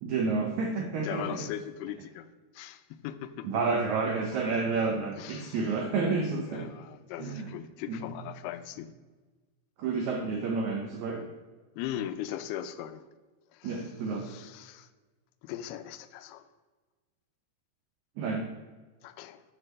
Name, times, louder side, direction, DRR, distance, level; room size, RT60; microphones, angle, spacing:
voice 1, 0.0-1.5 3.4-6.7 7.2-7.5 7.9-8.1 9.8-11.3 13.6-14.3 18.2-18.5, right 4 dB, 90° right, 2 dB, 1.6 m, -30 dB
voice 2, 1.0-3.5 4.3-4.4 5.2-5.7 6.5-8.9 11.8-13.1 13.5-13.9 14.2-14.9 15.4-16.4 19.0-19.4, left 11 dB, 80° left, 11 dB, 2.4 m, -39 dB
8.0 x 5.8 x 6.5 m, 1.3 s
omnidirectional pair, 4.6 m